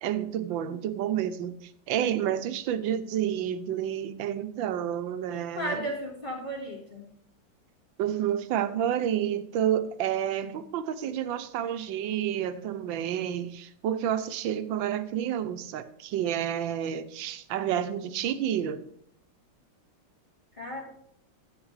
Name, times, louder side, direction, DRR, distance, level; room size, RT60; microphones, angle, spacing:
voice 1, 0.0-5.9 8.0-18.8, right 10 dB, 80° right, 11 dB, 1.5 m, -30 dB
voice 2, 5.3-7.1 20.5-20.8, equal, 25° left, -4 dB, 2.5 m, -35 dB
11.0 x 8.1 x 4.8 m, 0.72 s
omnidirectional pair, 2.1 m